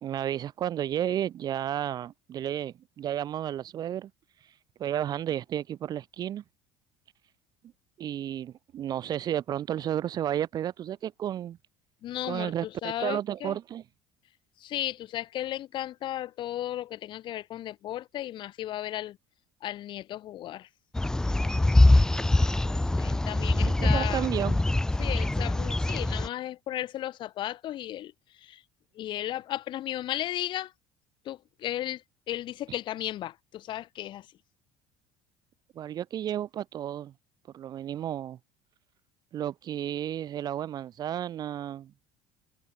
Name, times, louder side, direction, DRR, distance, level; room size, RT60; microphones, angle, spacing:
voice 1, 0.0-4.1 4.8-6.4 8.0-11.6 12.2-13.8 23.8-24.6 35.7-37.1 37.5-38.4 39.3-41.9, right 11 dB, 35° right, 1.3 m, -32 dB
voice 2, 12.0-13.6 14.6-19.2 19.6-20.7 23.0-24.3 25.0-28.6 28.9-30.7 31.2-34.3, left 13 dB, 40° left, 3.9 m, -35 dB
sound 1, 20.9-26.3, left 2 dB, 5° left, 0.7 m, -23 dB
cardioid pair, 170°, 12 cm